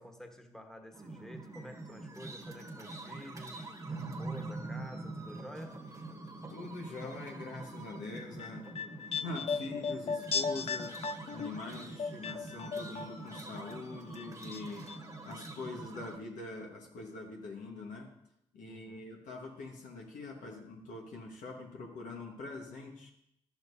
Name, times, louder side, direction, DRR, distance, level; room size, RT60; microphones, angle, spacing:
voice 1, 0.0-5.8 18.6-19.0, equal, 5° left, 4 dB, 1.4 m, -50 dB
sound 1, 0.9-16.2, right 2 dB, 25° right, 1.4 m, -45 dB
voice 2, 6.5-8.8 9.2-11.0 11.3-14.9 15.2-18.1 18.5-23.1, left 3 dB, 85° left, 0 dB, 1.5 m, -44 dB
sound 2, 8.2-13.4 13.7-14.6 14.9-15.0, left 5 dB, 50° left, 0.5 m, -36 dB
11.5 x 7.0 x 2.8 m, 0.78 s
supercardioid pair, 50°, 13 cm